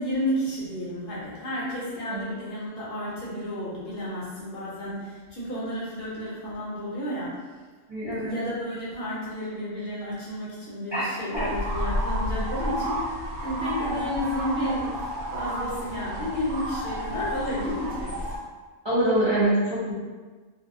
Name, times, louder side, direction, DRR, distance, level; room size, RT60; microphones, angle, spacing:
voice 1, 0.0-7.5 8.0-18.3, equal, 55° left, -8 dB, 0.9 m, -32 dB
voice 2, 7.9-8.3 10.9-11.5 18.8-19.9, right 1 dB, 35° right, -12 dB, 0.5 m, -25 dB
sound 1, 11.3-18.4, equal, 85° right, 1.0 m, -31 dB
2.5 x 2.2 x 2.5 m, 1.4 s
omnidirectional pair, 1.3 m